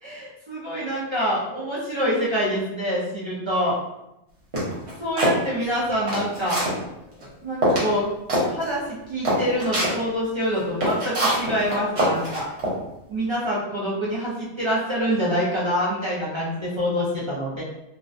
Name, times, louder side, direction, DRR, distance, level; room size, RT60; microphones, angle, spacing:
voice 1, 0.0-3.8 5.0-6.6 7.2-8.1 8.5-12.5 13.1-17.6, equal, 40° right, -7 dB, 0.4 m, -26 dB
sound 1, 4.5-5.4 5.9-6.8 7.2-7.3 7.6-7.9 8.3-8.5 8.8-8.9 9.2-9.9 10.5-12.7, equal, 70° right, 1.1 m, -23 dB
2.4 x 2.1 x 2.5 m, 0.88 s
omnidirectional pair, 1.2 m